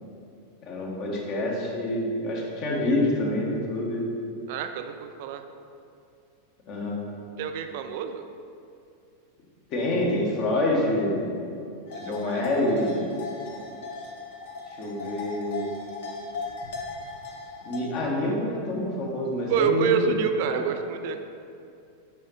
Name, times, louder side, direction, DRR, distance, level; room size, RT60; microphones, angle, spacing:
voice 1, 0.7-4.0 6.7-7.1 9.7-11.6 12.0-13.0 14.8-15.7 17.6-20.2 20.5-20.6, left 1 dB, 40° left, -2 dB, 1.3 m, -27 dB
voice 2, 4.5-5.4 7.4-8.2 11.9-12.4 19.5-21.2, right 7 dB, 50° right, 7 dB, 0.3 m, -27 dB
sound 1, 11.9-17.8, left 4 dB, 55° left, 1.0 m, -38 dB
5.5 x 5.2 x 4.3 m, 2.5 s
figure-of-eight pair, 90°, 0 cm